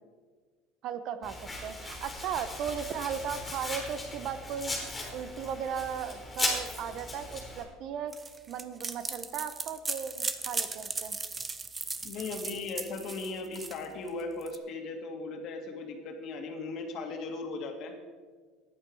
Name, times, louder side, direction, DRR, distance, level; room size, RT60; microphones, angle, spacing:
voice 1, 0.8-4.7 5.1-8.1 8.5-11.2, right 8 dB, 55° right, 12 dB, 0.9 m, -36 dB
Domestic sounds home sounds, 1.2-7.6, left 2 dB, 15° left, 4.2 m, -37 dB
sound 1, 8.1-14.6, right 4 dB, 20° right, 0.8 m, -37 dB
voice 2, 12.0-17.9, left 3 dB, 50° left, 3 dB, 2.3 m, -37 dB
14.0 x 11.0 x 4.8 m, 1.5 s
cardioid pair, 130°, 0 cm